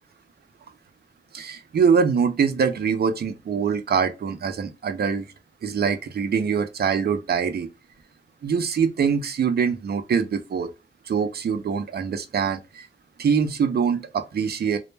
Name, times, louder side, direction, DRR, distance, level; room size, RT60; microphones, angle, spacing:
voice 1, 1.3-5.3 5.6-7.7 8.4-10.7 11.1-12.9 13.2-14.8, right 6 dB, 55° right, 0.4 m, -23 dB
2.1 x 2.1 x 3.1 m
wide cardioid pair, 140°, 20 cm